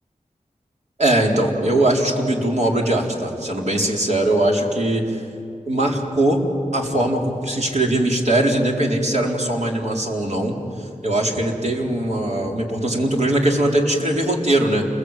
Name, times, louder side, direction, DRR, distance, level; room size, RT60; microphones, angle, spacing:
voice 1, 1.0-5.2 5.7-6.4 6.7-10.6 11.0-14.8, right 1 dB, 60° right, 0 dB, 4.2 m, -20 dB
29.0 x 21.5 x 9.1 m, 2.6 s
wide cardioid pair, 70°, 13 cm